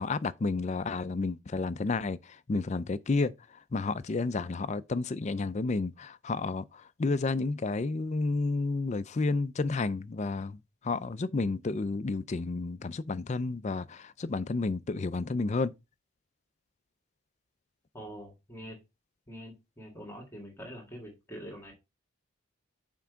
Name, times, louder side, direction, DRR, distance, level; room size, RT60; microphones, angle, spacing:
voice 1, 0.0-15.7, left 3 dB, 30° left, 0.4 m, -31 dB
voice 2, 17.9-18.8 19.3-21.7, equal, 10° left, 1.7 m, -45 dB
5.9 x 4.5 x 5.0 m
head